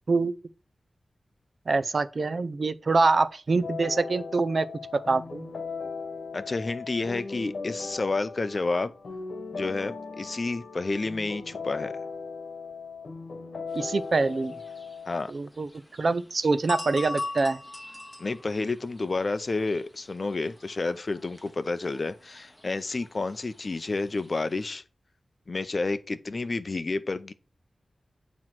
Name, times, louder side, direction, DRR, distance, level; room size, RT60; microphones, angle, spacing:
voice 1, 1.7-4.7 4.9-5.5 13.7-14.5 15.3-15.7 16.0-17.6, right 3 dB, 50° right, 0.4 m, -25 dB
sound 1, 3.6-15.2, left 4 dB, 70° left, 1.1 m, -38 dB
voice 2, 6.3-8.9 9.5-11.9 15.1-15.3 18.2-24.8 25.5-27.3, left 3 dB, 40° left, 0.5 m, -30 dB
sound 2, 13.7-24.6, left 2 dB, 5° left, 1.2 m, -43 dB
8.9 x 3.0 x 5.9 m
wide cardioid pair, 125°, 0 cm